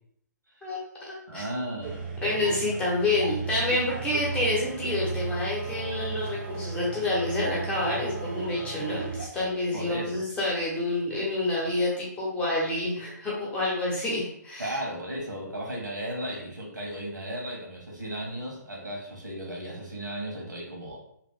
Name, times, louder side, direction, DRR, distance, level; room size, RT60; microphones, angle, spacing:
voice 1, 0.6-1.4 2.2-14.8, left 2 dB, 10° left, -4 dB, 0.9 m, -28 dB
voice 2, 1.3-2.2 9.7-10.2 14.6-21.0, right 1 dB, 90° right, -2 dB, 1.4 m, -35 dB
sound 1, 1.8-9.3, right 4 dB, 35° right, 0.7 m, -35 dB
3.0 x 2.5 x 3.5 m, 0.71 s
figure-of-eight pair, 140°, 10 cm